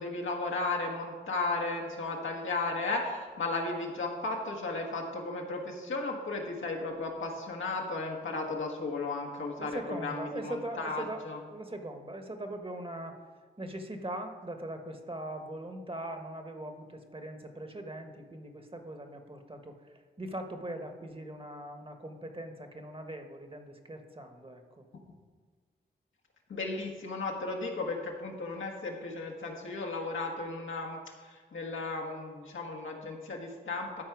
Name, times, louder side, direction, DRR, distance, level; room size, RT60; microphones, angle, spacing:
voice 1, 0.0-11.4 26.5-34.0, left 3 dB, 80° left, 0 dB, 1.4 m, -35 dB
voice 2, 9.6-11.2 11.5-13.2 13.6-24.8, right 1 dB, 25° right, 5 dB, 1.3 m, -41 dB
13.0 x 4.4 x 4.8 m, 1.5 s
cardioid pair, 40°, 20 cm